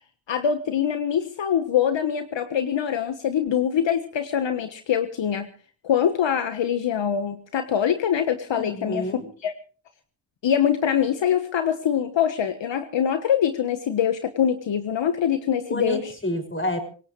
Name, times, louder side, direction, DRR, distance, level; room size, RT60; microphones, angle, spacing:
voice 1, 0.3-5.5 5.8-9.1 9.4-9.5 10.4-16.1, left 8 dB, 70° left, 8 dB, 1.4 m, -24 dB
voice 2, 8.5-9.3 15.7-16.8, left 1 dB, 25° left, 7 dB, 6.3 m, -29 dB
25.5 x 17.5 x 3.2 m, 0.40 s
supercardioid pair, 45°, 46 cm